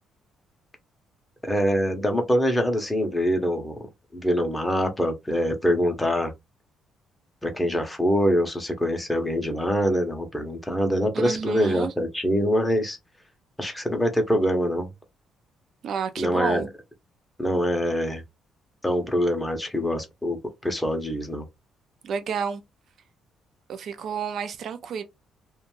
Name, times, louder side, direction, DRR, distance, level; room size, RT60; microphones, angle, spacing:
voice 1, 1.4-3.8 4.1-6.3 7.4-13.0 13.6-14.9 16.2-16.6 17.4-18.2 18.8-20.4 20.6-21.5, equal, 10° left, 0.6 m, -24 dB
voice 2, 11.1-11.9 15.8-16.7 22.0-22.6 23.7-25.0, right 6 dB, 55° right, 0.4 m, -30 dB
2.4 x 2.2 x 3.0 m
cardioid pair, 150°, 0 cm